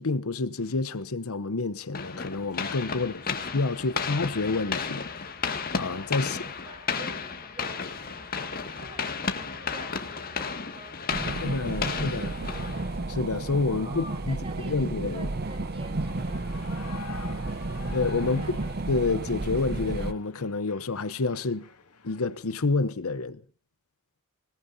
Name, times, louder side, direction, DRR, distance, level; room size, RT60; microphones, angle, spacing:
voice 1, 0.0-3.3 3.5-5.1 5.8-6.4 11.4-12.3 13.1-14.4 14.6-15.3 17.9-18.4 18.9-21.7 22.0-23.4, left 3 dB, 70° left, 0.9 m, -28 dB
sound 1, 1.9-13.2, left 5 dB, 40° left, 2.0 m, -33 dB
voice 2, 2.9-3.4 3.7-4.1 6.2-12.8 13.7-17.1 18.3-18.7, right 1 dB, 25° right, 6.5 m, -49 dB
sound 2, 11.1-20.1, right 2 dB, 45° right, 0.8 m, -32 dB
Shout / Cheering, 14.8-22.5, left 6 dB, 90° left, 2.5 m, -48 dB
26.5 x 18.5 x 2.7 m
head